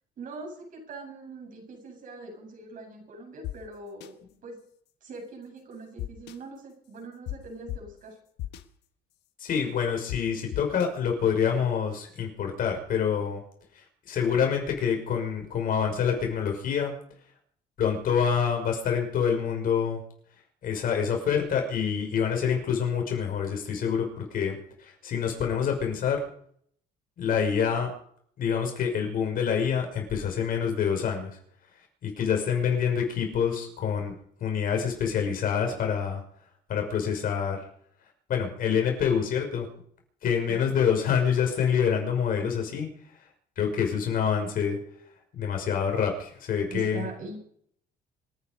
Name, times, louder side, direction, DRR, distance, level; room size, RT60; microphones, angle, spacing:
voice 1, 0.2-4.2 4.4-4.6 5.0-8.2 40.5-40.7 46.7-47.4, right 3 dB, 55° right, 2 dB, 7.8 m, -42 dB
sound 1, 3.4-3.5 4.0-4.1 6.0-6.4 7.3-7.4 7.7-7.8 8.4-8.6 10.1-10.2 10.5-10.9, left 14 dB, 80° left, 1.3 m, -34 dB
voice 2, 9.4-13.4 14.1-16.9 17.8-20.0 20.6-26.2 27.2-27.9 28.4-31.3 32.0-34.1 34.4-36.2 36.7-37.6 38.3-39.7 40.2-42.9 43.6-44.8 45.3-47.1, left 7 dB, 55° left, 3 dB, 6.0 m, -26 dB
26.5 x 10.0 x 5.4 m, 0.64 s
cardioid pair, 110°, 17 cm